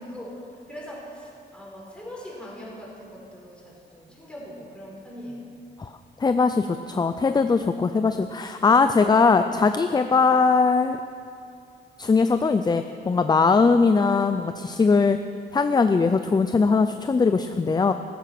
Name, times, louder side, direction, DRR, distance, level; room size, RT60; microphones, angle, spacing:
voice 1, 0.0-5.6 6.0-6.1 9.0-9.2, equal, 5° left, -5 dB, 5.1 m, -41 dB
voice 2, 6.2-11.0 12.0-15.2 15.5-17.9, left 4 dB, 20° left, 9 dB, 0.5 m, -20 dB
15.0 x 14.0 x 6.0 m, 2.5 s
cardioid pair, 120°, 19 cm